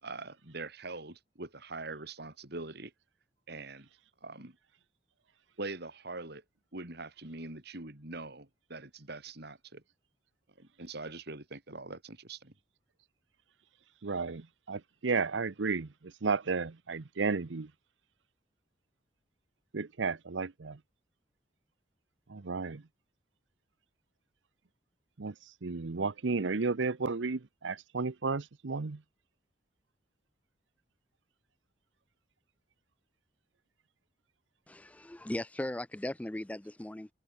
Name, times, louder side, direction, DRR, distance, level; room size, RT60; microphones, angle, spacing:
voice 1, 0.0-2.9 3.5-3.9 4.2-4.6 5.6-6.4 6.7-9.8 10.6-12.5, right 3 dB, 60° right, 3.5 m, -43 dB
voice 2, 14.0-15.9 16.2-17.7 19.7-20.8 22.3-22.8 25.2-25.3 25.6-29.0, right 4 dB, 75° right, 0.8 m, -33 dB
voice 3, 34.7-37.1, left 1 dB, 10° left, 0.4 m, -38 dB
head